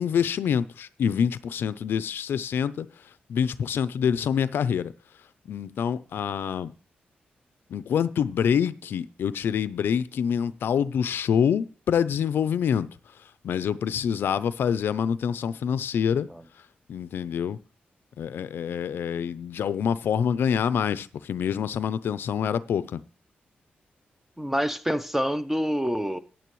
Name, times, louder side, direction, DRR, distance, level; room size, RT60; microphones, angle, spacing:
voice 1, 0.0-2.9 3.3-4.9 5.5-6.7 7.7-12.9 13.4-16.3 16.9-17.6 18.2-23.0, left 8 dB, 80° left, 0.5 m, -26 dB
voice 2, 24.4-26.2, equal, 5° right, 0.6 m, -26 dB
14.0 x 9.1 x 3.1 m
cardioid pair, 105°, 4 cm